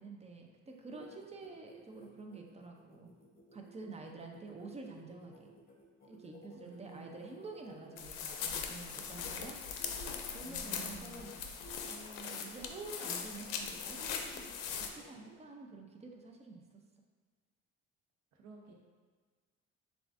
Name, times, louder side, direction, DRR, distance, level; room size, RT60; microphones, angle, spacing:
voice 1, 0.0-3.1 3.5-5.5 6.0-9.6 9.9-10.0 10.3-14.5 14.8-16.6, right 3 dB, 20° right, 2 dB, 0.5 m, -49 dB
sound 1, 0.7-8.5 8.9-10.6 11.0-11.3 11.6-11.9 12.2-13.2 13.6-15.4, equal, 30° left, 1.0 m, -56 dB
voice 2, 3.9-4.7 6.5-7.3 10.4-11.5 18.3-18.7, right 3 dB, 65° right, 1 dB, 0.8 m, -54 dB
sound 2, 8.0-14.9, left 6 dB, 90° left, 0.5 m, -40 dB
6.7 x 2.4 x 2.5 m, 1.5 s
cardioid pair, 90°, 29 cm